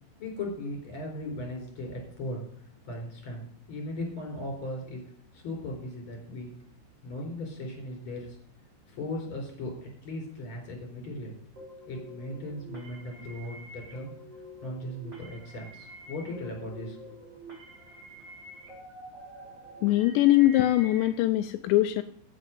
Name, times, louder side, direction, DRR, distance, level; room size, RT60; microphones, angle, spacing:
voice 1, 0.2-2.4 2.8-5.0 5.3-6.5 7.0-8.4 8.9-11.3 11.9-14.1 14.6-17.0, left 1 dB, 30° left, 1 dB, 4.8 m, -37 dB
sound 1, 11.5-21.1, right 1 dB, 25° right, 4.4 m, -47 dB
voice 2, 19.8-22.0, left 15 dB, 85° left, 8 dB, 2.9 m, -22 dB
15.5 x 6.7 x 5.4 m, 0.63 s
omnidirectional pair, 5.1 m